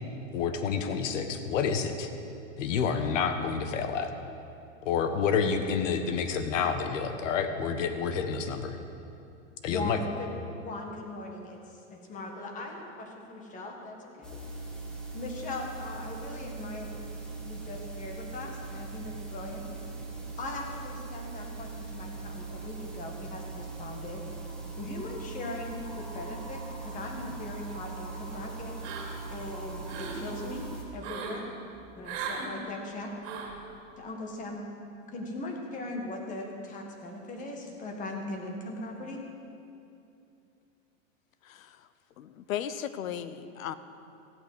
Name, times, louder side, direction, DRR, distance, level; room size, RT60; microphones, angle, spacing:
voice 1, 0.3-2.1 2.6-4.1 4.8-8.8 9.6-10.0, left 6 dB, 65° left, 8 dB, 1.5 m, -29 dB
voice 2, 9.7-10.3 10.6-14.4 15.1-17.0 17.4-19.7 20.4-24.3 24.8-28.8 29.3-31.5 32.0-33.1 34.0-34.6 35.1-39.2, left 2 dB, 20° left, 2 dB, 1.7 m, -39 dB
sound 1, 14.2-30.8, right 3 dB, ahead, 1.5 m, -40 dB
sound 2, 28.8-29.3 29.7-30.2 31.0-31.4 32.0-32.5 33.2-33.6, right 6 dB, 60° right, 2.8 m, -37 dB
voice 3, 41.4-41.8 42.2-43.7, left 10 dB, 80° left, 13 dB, 0.9 m, -36 dB
15.0 x 8.7 x 8.0 m, 2.7 s
supercardioid pair, 160°, 40 cm